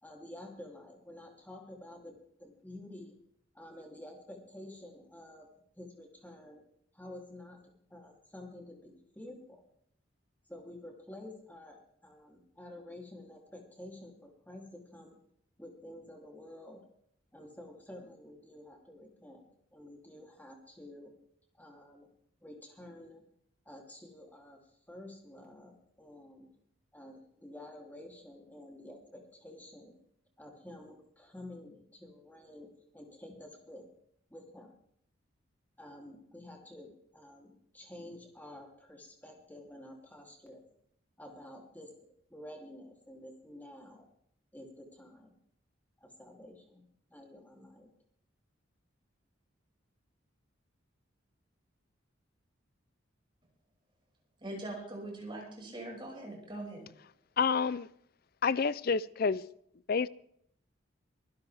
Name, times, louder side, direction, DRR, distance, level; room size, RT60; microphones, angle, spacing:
voice 1, 0.0-3.1 3.5-5.5 5.8-6.6 6.9-9.6 10.5-15.2 15.6-16.8 17.3-19.5 19.7-21.1 21.6-22.1 22.4-23.2 23.6-24.6 24.9-26.5 26.9-29.9 30.4-33.9 34.3-34.7 35.8-40.6 41.2-41.9 42.3-44.1 44.5-45.3 46.0-46.8 47.1-47.9, left 1 dB, 10° left, 2.9 m, -50 dB
voice 2, 54.4-56.9, right 1 dB, 25° right, 5.9 m, -42 dB
voice 3, 57.4-57.9 58.4-59.4 59.9-60.1, left 5 dB, 50° left, 0.5 m, -28 dB
24.0 x 11.5 x 3.5 m
head